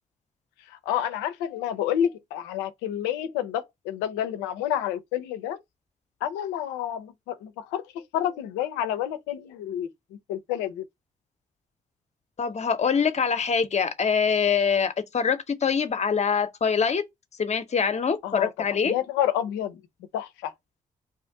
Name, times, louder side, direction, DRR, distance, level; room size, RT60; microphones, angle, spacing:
voice 1, 0.7-5.6 6.2-7.8 8.1-9.9 10.3-10.8 18.2-18.5 18.8-19.8 20.1-20.5, left 10 dB, 85° left, 0.4 m, -29 dB
voice 2, 12.4-17.0 17.4-18.9, left 6 dB, 40° left, 0.7 m, -24 dB
2.5 x 2.5 x 3.5 m
hypercardioid pair, 40°, 18 cm